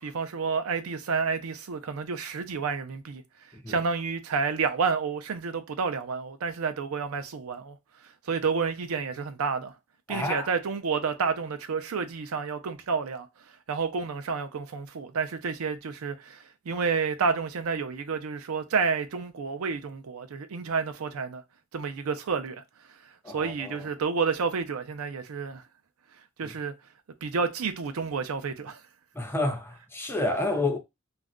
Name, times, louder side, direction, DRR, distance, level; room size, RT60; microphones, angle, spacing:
voice 1, 0.0-3.2 3.7-7.8 8.3-9.7 10.1-13.3 13.7-21.4 21.7-22.6 23.3-25.6 26.4-26.7 27.2-28.8, right 5 dB, 90° right, 0.5 m, -30 dB
voice 2, 10.1-10.5 23.2-23.9 26.4-26.5 29.2-30.8, left 2 dB, 10° left, 0.5 m, -30 dB
2.4 x 2.1 x 3.5 m
head